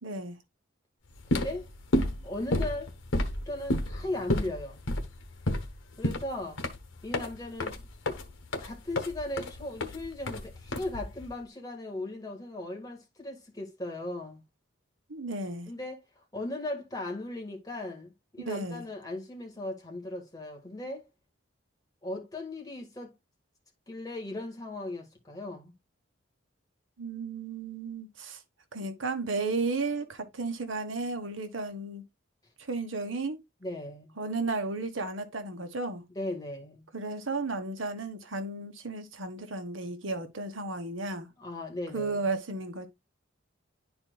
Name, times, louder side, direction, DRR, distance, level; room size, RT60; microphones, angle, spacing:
voice 1, 0.0-0.4 15.1-15.7 18.4-18.9 27.0-28.4 28.7-32.0 32.7-33.4 34.2-36.0 36.9-41.3 41.9-42.9, right 3 dB, 80° right, 1.1 m, -34 dB
sound 1, 1.1-11.3, left 1 dB, 90° left, 1.1 m, -31 dB
voice 2, 1.3-1.7 2.2-2.9 3.4-4.8 6.0-6.6 7.0-7.9 8.6-14.4 15.7-21.1 22.0-23.1 23.9-25.7 33.6-34.2 36.1-36.9 41.4-42.2, left 1 dB, 20° left, 1.6 m, -37 dB
11.0 x 4.4 x 2.3 m
head